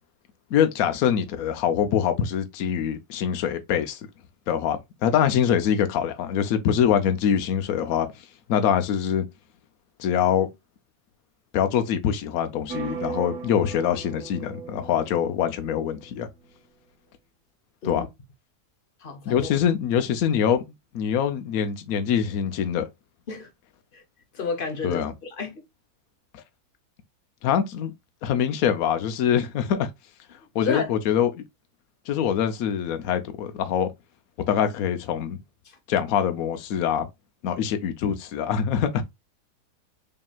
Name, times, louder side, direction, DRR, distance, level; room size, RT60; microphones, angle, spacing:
voice 1, 0.5-4.0 4.5-8.1 8.5-9.3 10.0-10.5 11.5-16.3 17.8-18.1 19.3-22.9 24.8-25.1 27.4-27.9 28.2-29.9 30.5-31.4 32.1-33.9 34.5-35.4 35.9-37.1 37.4-39.0, left 8 dB, 65° left, 1.1 m, -24 dB
sound 1, 12.7-16.5, right 6 dB, 70° right, 1.2 m, -37 dB
voice 2, 19.0-19.5 23.3-23.5 23.9-24.0 24.3-25.6 30.6-30.9, left 4 dB, 40° left, 0.9 m, -31 dB
5.2 x 2.9 x 2.3 m
omnidirectional pair, 1.7 m